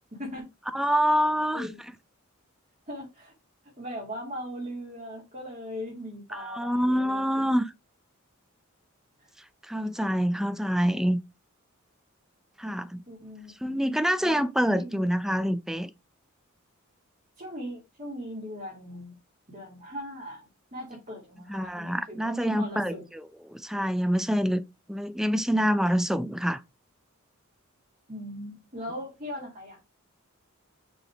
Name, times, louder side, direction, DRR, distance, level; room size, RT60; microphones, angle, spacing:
voice 1, 0.1-0.5 1.5-1.8 2.9-3.3 3.8-7.3 13.1-13.8 14.2-14.5 14.8-15.0 17.4-19.1 19.5-20.4 20.7-23.0 28.1-29.9, equal, 35° right, 2.4 m, -39 dB
voice 2, 0.7-1.7 6.3-7.7 9.6-11.2 12.6-13.0 13.6-15.9 21.5-24.6 24.9-26.6, equal, ahead, 0.5 m, -26 dB
6.0 x 3.6 x 4.5 m
head